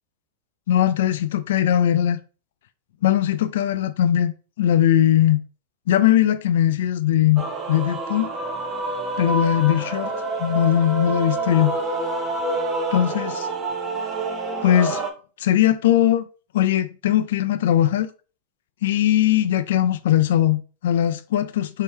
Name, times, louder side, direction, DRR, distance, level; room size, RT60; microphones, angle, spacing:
voice 1, 0.7-2.2 3.0-5.4 5.9-7.4 7.7-8.3 9.2-10.1 10.4-11.7 12.9-13.5 14.6-15.0 15.4-16.3 16.5-18.1 18.8-21.8, left 11 dB, 70° left, 0.3 m, -20 dB
Male singing / Female singing / Musical instrument, 7.4-15.1, right 2 dB, 20° right, 0.6 m, -27 dB
3.5 x 2.8 x 4.2 m
supercardioid pair, 165°, 0 cm